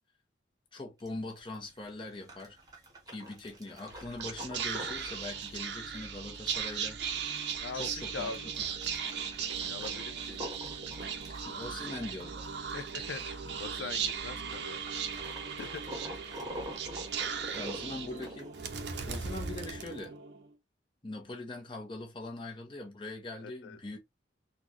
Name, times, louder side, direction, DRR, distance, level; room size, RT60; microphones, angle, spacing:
voice 1, 0.7-2.6 3.1-7.2 7.7-8.3 11.4-12.5 17.5-18.6 19.1-20.1 21.0-24.0, left 2 dB, 25° left, 0.8 m, -42 dB
sound 1, 1.0-19.4, equal, 20° right, 0.9 m, -47 dB
Whispering, 3.9-20.5, right 6 dB, 65° right, 0.6 m, -37 dB
voice 2, 7.6-8.5 9.6-10.4 11.8-12.0 12.7-14.8 15.6-16.3 23.4-23.8, left 5 dB, 75° left, 0.4 m, -42 dB
3.9 x 2.3 x 2.9 m
head